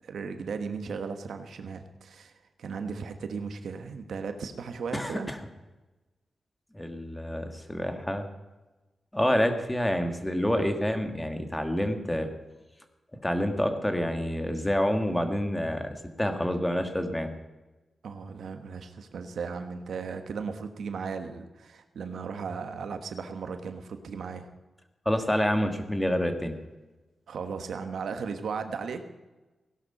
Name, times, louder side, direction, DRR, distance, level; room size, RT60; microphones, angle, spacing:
voice 1, 0.0-2.3 2.6-5.3 18.0-24.5 27.3-29.1, right 5 dB, 90° right, 7 dB, 1.3 m, -36 dB
voice 2, 4.9-5.4 6.7-8.3 9.1-12.3 13.2-17.3 25.0-26.6, equal, 10° left, 6 dB, 1.5 m, -28 dB
17.0 x 11.5 x 5.5 m, 1.1 s
wide cardioid pair, 125°, 0 cm